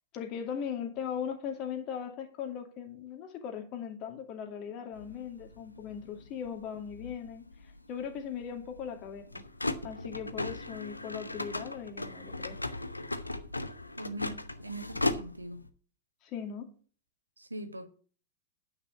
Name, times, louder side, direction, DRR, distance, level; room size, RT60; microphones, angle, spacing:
voice 1, 0.1-9.4 9.8-12.6 16.2-16.7, left 8 dB, 40° left, 2.3 m, -39 dB
sound 1, 4.9-15.7, left 2 dB, 90° left, 0.8 m, -38 dB
voice 2, 14.0-15.6 17.4-17.9, right 1 dB, 85° right, 1.3 m, -41 dB
9.6 x 5.8 x 6.9 m
figure-of-eight pair, 95°, 0 cm